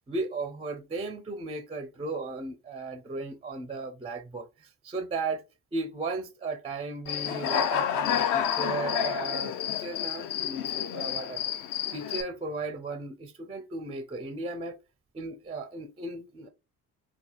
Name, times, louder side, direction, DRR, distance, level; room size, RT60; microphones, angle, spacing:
voice 1, 0.1-5.4 5.7-11.5 11.9-14.8 15.1-16.5, right 3 dB, 15° right, 0.4 m, -36 dB
Human voice / Cricket, 7.1-12.2, left 9 dB, 50° left, 0.5 m, -29 dB
2.8 x 2.2 x 2.8 m
hypercardioid pair, 55°, 43 cm